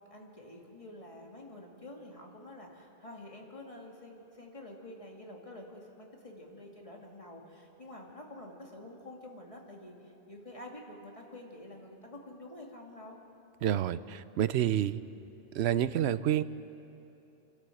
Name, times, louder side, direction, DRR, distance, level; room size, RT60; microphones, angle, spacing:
voice 1, 0.1-9.9 10.3-13.2, left 1 dB, 30° left, -1 dB, 2.3 m, -48 dB
voice 2, 13.6-15.0 15.5-16.4, right 11 dB, 85° right, 15 dB, 0.9 m, -28 dB
28.0 x 12.0 x 7.8 m, 3.0 s
omnidirectional pair, 1.1 m